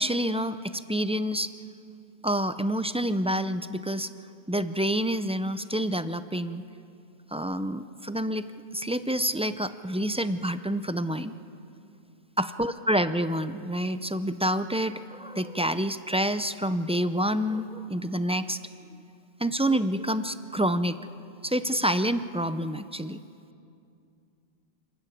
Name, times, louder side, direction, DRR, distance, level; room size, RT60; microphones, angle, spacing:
voice 1, 0.0-1.5 2.2-4.1 4.5-6.6 7.3-8.5 8.7-11.3 12.4-18.6 19.4-21.0 21.4-23.2, equal, 10° right, 11 dB, 0.3 m, -28 dB
28.5 x 13.0 x 9.3 m, 2.5 s
omnidirectional pair, 1.0 m